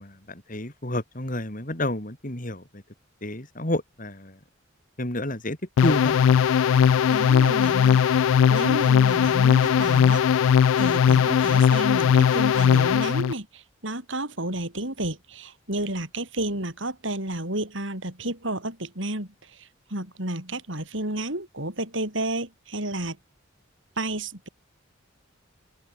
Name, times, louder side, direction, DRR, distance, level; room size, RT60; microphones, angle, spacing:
voice 1, 0.0-2.8 3.2-4.4 5.0-6.2, left 1 dB, 40° left, 3.9 m, -30 dB
sound 1, 5.8-13.3, left 7 dB, 80° left, 0.3 m, -19 dB
voice 2, 7.1-10.2 10.8-23.2 24.0-24.5, right 1 dB, 70° right, 7.0 m, -31 dB
open air
head